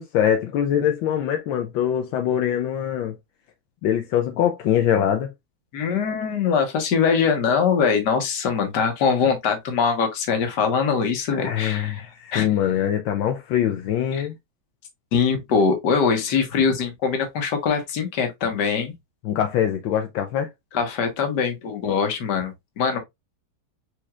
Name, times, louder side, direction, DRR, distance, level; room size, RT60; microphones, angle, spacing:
voice 1, 0.0-3.2 3.8-5.3 11.4-14.3 19.2-20.5, left 10 dB, 80° left, 1.4 m, -23 dB
voice 2, 5.7-12.0 12.3-12.5 14.1-14.2 15.1-18.9 20.7-23.0, left 6 dB, 60° left, 1.7 m, -22 dB
4.8 x 4.2 x 2.3 m
omnidirectional pair, 2.2 m